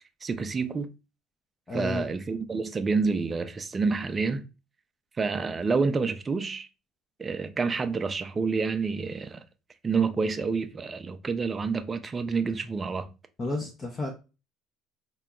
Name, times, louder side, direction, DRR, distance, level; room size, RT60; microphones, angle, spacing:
voice 1, 0.2-0.9 1.7-4.4 5.2-6.7 7.2-9.4 9.8-13.1, right 4 dB, 25° right, 0.4 m, -28 dB
voice 2, 1.7-2.1 13.4-14.1, left 2 dB, 30° left, 0.7 m, -31 dB
2.9 x 2.2 x 3.6 m
cardioid pair, 110°, 0 cm